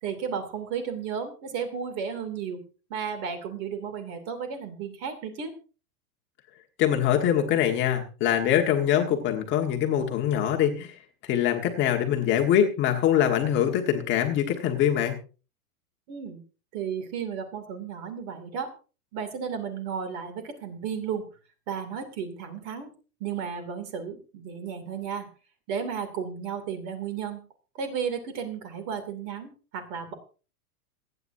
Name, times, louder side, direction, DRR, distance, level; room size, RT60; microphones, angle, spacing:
voice 1, 0.0-2.6 2.9-5.5 16.1-16.4 16.7-18.7 19.1-21.3 21.7-22.9 23.2-25.3 25.7-27.4 27.7-30.1, right 7 dB, 35° right, 8 dB, 2.7 m, -33 dB
voice 2, 6.8-11.0 11.2-15.1, left 10 dB, 25° left, 3 dB, 1.5 m, -23 dB
27.0 x 9.4 x 2.7 m, 0.35 s
supercardioid pair, 160°, 47 cm